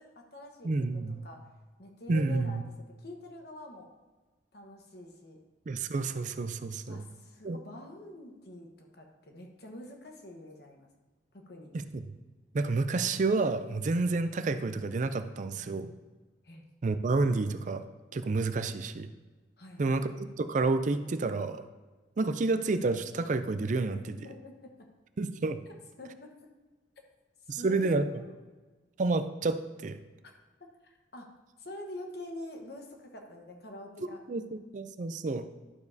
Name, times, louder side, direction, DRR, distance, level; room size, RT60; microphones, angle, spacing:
voice 1, 0.0-0.7 1.2-1.5 1.8-2.6 3.0-3.9 4.5-5.4 6.9-10.9 11.3-11.7 16.4-16.7 19.6-19.9 24.1-24.9 25.7-26.3 27.5-28.3 30.8-31.3 31.6-34.2, left 1 dB, 60° left, 2 dB, 1.2 m, -46 dB
voice 2, 0.6-1.2 2.1-2.6 5.7-7.0 7.4-7.6 11.7-12.0 12.5-15.9 16.8-17.8 18.1-19.1 19.8-21.6 22.2-24.1 25.2-25.6 27.5-28.2 29.0-30.0 34.0-35.5, right 3 dB, 45° right, 10 dB, 0.4 m, -30 dB
11.5 x 6.9 x 2.7 m, 1.3 s
head